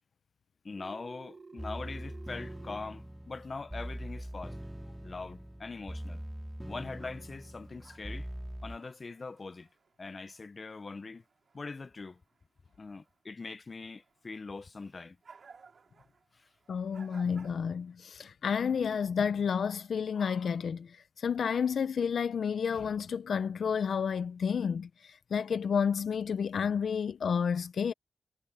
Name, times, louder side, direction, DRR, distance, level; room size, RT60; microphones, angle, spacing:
voice 1, 0.6-4.6 5.0-6.2 6.6-8.3 8.6-9.7 10.0-11.2 11.5-12.2 12.8-15.2 16.4-16.5, left 4 dB, 45° left, 0.8 m, -42 dB
Telephone, 0.8-2.8, right 4 dB, 45° right, 1.3 m, -51 dB
sound 1, 1.6-8.8, right 1 dB, 10° right, 2.4 m, -42 dB
sound 2, 6.9-10.8 11.1-12.4 12.7-13.1 13.5-13.6 13.9-17.9, right 5 dB, 65° right, 2.8 m, -59 dB
voice 2, 16.7-20.9 21.2-24.9 25.3-27.9, left 6 dB, 75° left, 0.5 m, -30 dB
cardioid pair, 60°, 0 cm